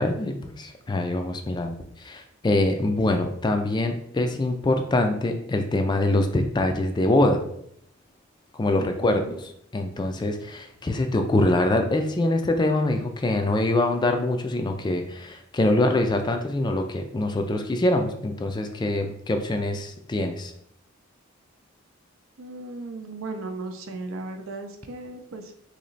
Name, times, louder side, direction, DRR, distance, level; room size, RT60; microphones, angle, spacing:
voice 1, 0.0-7.4 8.5-9.2 9.7-20.5, left 2 dB, 20° left, 6 dB, 0.3 m, -24 dB
voice 2, 8.8-9.4 22.4-25.5, right 3 dB, 80° right, 6 dB, 0.6 m, -36 dB
3.1 x 2.9 x 3.9 m, 0.69 s
head